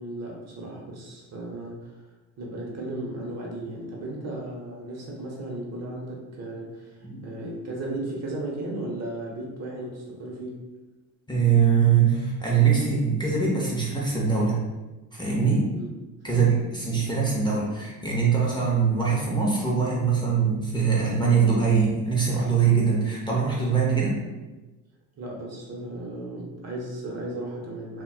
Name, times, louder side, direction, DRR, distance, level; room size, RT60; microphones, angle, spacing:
voice 1, 0.0-2.0 2.4-10.6 15.7-15.9 16.3-16.5 25.2-28.0, right 1 dB, 40° right, -2 dB, 0.8 m, -35 dB
voice 2, 7.0-7.4 11.3-14.6 15.1-15.6 16.2-24.1, right 6 dB, 10° left, -5 dB, 0.6 m, -22 dB
4.0 x 2.2 x 2.2 m, 1.1 s
supercardioid pair, 90°, 41 cm